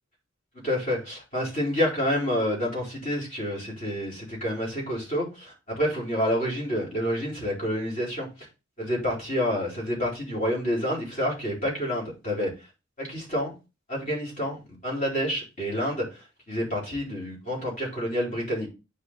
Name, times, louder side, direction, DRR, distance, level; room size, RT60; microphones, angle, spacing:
voice 1, 0.5-8.5 8.8-12.5 13.0-13.5 13.9-18.7, equal, 40° left, -4 dB, 4.1 m, -28 dB
8.3 x 5.4 x 3.7 m, 0.28 s
head